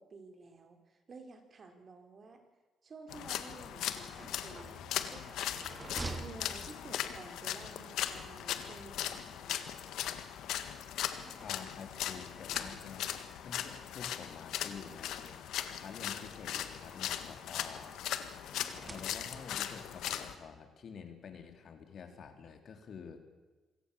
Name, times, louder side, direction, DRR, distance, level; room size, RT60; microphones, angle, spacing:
voice 1, 0.0-2.4 2.8-10.1, right 3 dB, 45° right, 6 dB, 4.3 m, -53 dB
sound 1, 3.1-20.3, left 11 dB, 85° left, 1.7 m, -39 dB
sound 2, 4.1-7.2 8.5-9.7 10.5-11.9 12.3-13.2 14.2-14.3 14.6-14.7 15.9-17.2 18.4-19.6, right 3 dB, 25° right, 2.9 m, -48 dB
voice 2, 11.4-15.4 15.7-18.0 18.8-23.2, left 6 dB, 60° left, 6 dB, 3.4 m, -49 dB
27.5 x 17.0 x 7.1 m, 1.2 s
cardioid pair, 90°, 0 cm